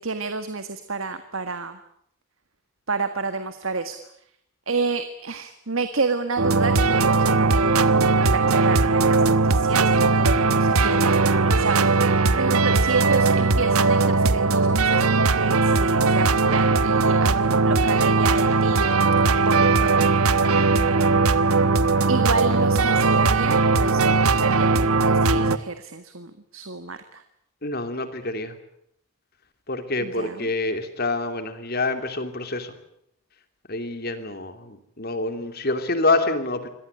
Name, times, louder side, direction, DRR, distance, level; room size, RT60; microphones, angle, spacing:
voice 1, 0.0-1.8 2.9-4.1 4.7-19.1 19.4-20.7 22.1-27.2 30.0-30.5, right 3 dB, 65° right, 9 dB, 1.7 m, -30 dB
sound 1, 6.4-25.6, right 3 dB, 85° right, 1.1 m, -19 dB
voice 2, 27.6-28.5 29.7-32.7 33.7-36.7, left 2 dB, 45° left, 9 dB, 2.9 m, -26 dB
25.5 x 18.0 x 9.9 m, 0.74 s
head